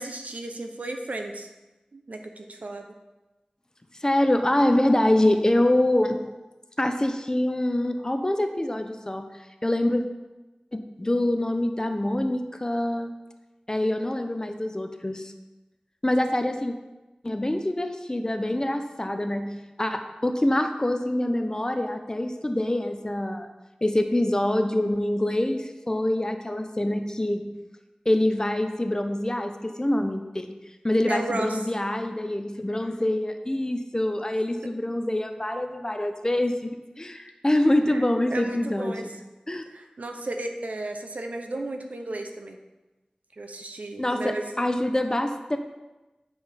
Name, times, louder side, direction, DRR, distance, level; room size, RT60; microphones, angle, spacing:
voice 1, 0.0-1.5 1.9-2.9 31.1-31.6 37.9-38.0 38.3-39.1 39.7-42.6 43.3-44.4, right 2 dB, 85° right, 4 dB, 0.8 m, -34 dB
voice 2, 4.0-6.3 6.8-9.2 9.6-10.0 10.7-13.1 13.7-15.3 16.0-16.7 17.2-23.5 23.8-27.6 28.0-30.5 30.8-39.1 39.5-39.6 44.0-45.6, left 1 dB, 25° left, 6 dB, 0.8 m, -25 dB
8.9 x 5.1 x 5.1 m, 1.1 s
wide cardioid pair, 60°, 2 cm